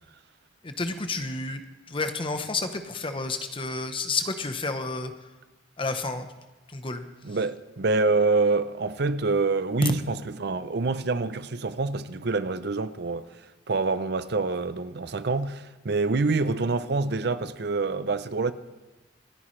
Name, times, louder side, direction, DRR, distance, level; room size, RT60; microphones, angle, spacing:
voice 1, 0.6-1.6 1.9-5.1 5.8-6.3 6.7-7.0, left 3 dB, 30° left, 0.9 m, -30 dB
voice 2, 7.2-13.3 13.7-18.5, right 3 dB, 60° right, 0.6 m, -26 dB
27.0 x 9.9 x 3.2 m
head